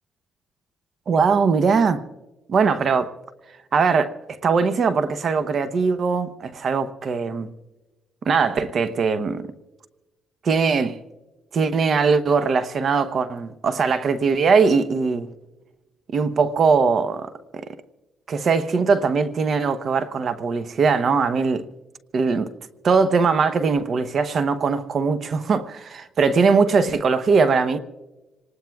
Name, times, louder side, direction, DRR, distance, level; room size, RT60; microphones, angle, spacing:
voice 1, 1.1-2.0 2.5-3.1 3.7-4.1 4.4-7.5 8.2-9.5 10.4-11.0 11.5-15.3 16.1-17.6 18.3-21.7 22.1-22.5 22.8-27.8, right 5 dB, 50° right, 0.8 m, -20 dB
27.0 x 19.5 x 2.3 m
cardioid pair, 90°, 0 cm